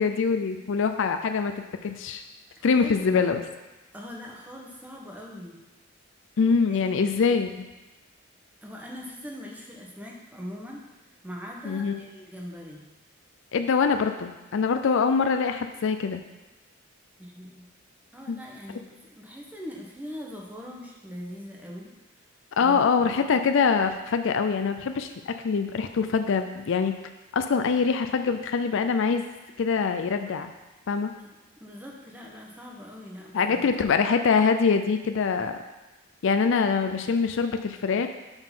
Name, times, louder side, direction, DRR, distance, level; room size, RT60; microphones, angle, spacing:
voice 1, 0.0-1.5 1.8-2.2 2.6-3.4 6.4-7.5 11.6-12.0 13.5-16.2 18.3-18.4 22.6-26.9 27.3-29.2 29.6-30.5 30.9-31.1 33.3-35.6 36.2-38.1, left 5 dB, 65° left, 7 dB, 0.4 m, -24 dB
voice 2, 2.6-3.1 3.9-5.6 6.7-7.3 8.6-10.9 11.2-12.8 17.2-17.7 18.1-22.0 22.6-23.1 31.2-33.6, equal, 10° right, -2 dB, 1.0 m, -41 dB
7.0 x 3.8 x 5.6 m, 1.1 s
head